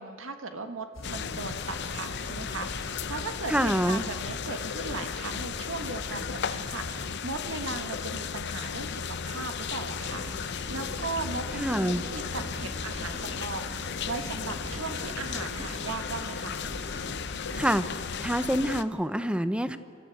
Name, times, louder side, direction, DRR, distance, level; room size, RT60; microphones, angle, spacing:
voice 1, 0.0-16.6, right 3 dB, 70° right, 7 dB, 1.5 m, -38 dB
sound 1, 0.9-7.1, left 1 dB, 80° left, 4.4 m, -43 dB
sound 2, 1.0-18.8, left 6 dB, 60° left, 0.7 m, -35 dB
voice 2, 3.5-4.0 11.6-12.0 17.6-19.8, equal, 5° right, 12 dB, 0.8 m, -26 dB
sound 3, 10.0-17.8, right 1 dB, 35° right, 1.4 m, -43 dB
28.0 x 14.0 x 9.2 m, 2.5 s
head